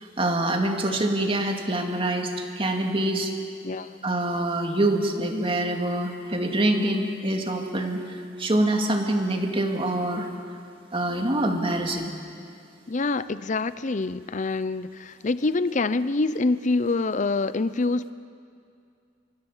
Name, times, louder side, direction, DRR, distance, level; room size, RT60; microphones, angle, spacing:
voice 1, 0.2-3.3 4.0-8.0 8.4-10.3 10.9-12.1, right 1 dB, 30° right, 3 dB, 2.2 m, -25 dB
voice 2, 12.9-18.1, left 3 dB, 40° left, 15 dB, 0.6 m, -26 dB
25.5 x 23.5 x 7.3 m, 2.4 s
head